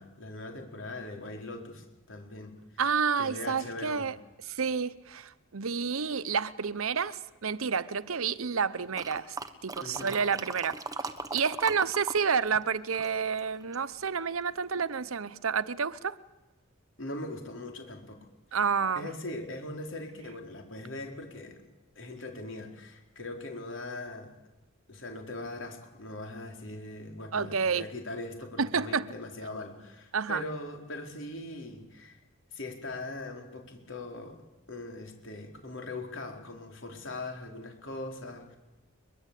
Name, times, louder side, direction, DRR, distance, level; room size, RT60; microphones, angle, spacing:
voice 1, 0.0-2.6 3.2-4.2 9.8-10.2 17.0-18.3 19.0-21.6 21.9-24.3 24.9-32.2 32.5-34.4 34.7-38.6, left 2 dB, 60° left, 4.5 m, -40 dB
voice 2, 2.8-4.2 4.4-9.4 9.6-16.2 18.5-19.1 27.3-27.9 28.6-29.1 30.1-30.4, right 6 dB, 80° right, 0.9 m, -30 dB
sound 1, 8.9-12.2 12.5-13.9 14.4-14.5, right 3 dB, 15° right, 1.3 m, -38 dB
23.0 x 22.0 x 8.4 m
head